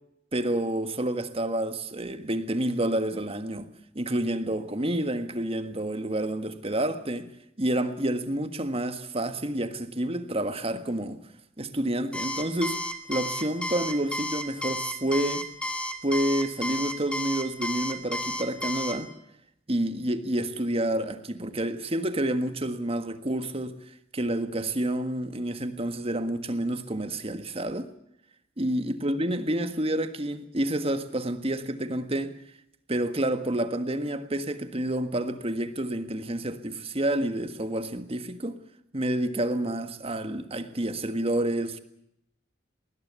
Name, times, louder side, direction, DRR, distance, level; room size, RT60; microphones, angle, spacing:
voice 1, 0.3-3.7 3.9-7.3 7.6-11.2 11.6-12.8 13.1-15.5 16.0-19.1 19.7-23.8 24.1-27.9 28.6-32.3 32.9-38.6 38.9-41.8, right 1 dB, 30° right, 1.7 m, -29 dB
Alarm, 12.1-18.9, left 1 dB, 5° left, 2.4 m, -32 dB
20.0 x 20.0 x 8.3 m
head